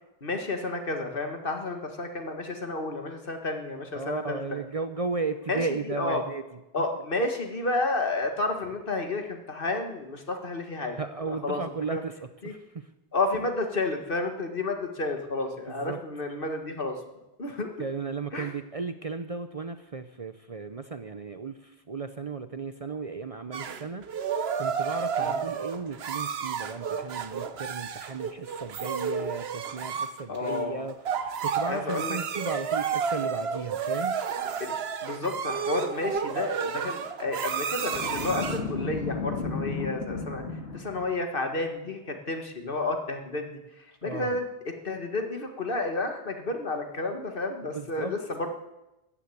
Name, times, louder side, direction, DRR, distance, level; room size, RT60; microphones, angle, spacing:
voice 1, 0.2-4.4 5.5-5.6 5.9-6.2 6.7-11.0 11.3-11.6 11.9-12.0 12.4-12.5 13.1-17.0 17.4-17.7 18.3-18.5 25.2-25.4 30.3-30.8 31.7-32.2 34.6-34.7 35.0-40.4 40.7-48.5, left 2 dB, 55° left, 5 dB, 1.9 m, -31 dB
voice 2, 3.9-6.6 10.9-12.9 15.7-16.0 17.8-24.0 24.6-34.2 44.0-44.4 47.7-48.2, right 4 dB, 40° right, 10 dB, 0.7 m, -35 dB
sound 1, 23.5-38.7, right 6 dB, 75° right, 1.1 m, -31 dB
Boom, 37.9-41.1, left 4 dB, 85° left, 2.2 m, -33 dB
14.5 x 9.9 x 8.4 m, 0.96 s
omnidirectional pair, 1.1 m